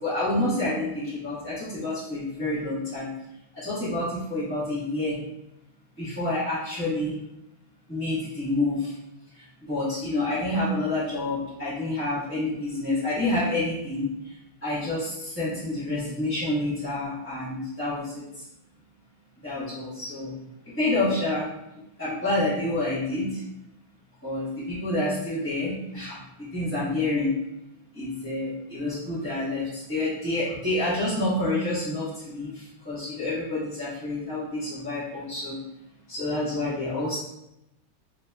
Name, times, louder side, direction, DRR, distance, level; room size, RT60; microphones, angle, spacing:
voice 1, 0.0-3.1 3.5-5.2 6.0-7.2 7.9-8.9 9.7-14.1 14.6-18.2 19.4-20.3 20.7-21.5 22.0-23.4 24.2-27.3 27.9-35.6 36.1-37.2, left 2 dB, 10° left, -13 dB, 0.8 m, -28 dB
3.9 x 2.6 x 2.3 m, 0.88 s
omnidirectional pair, 2.4 m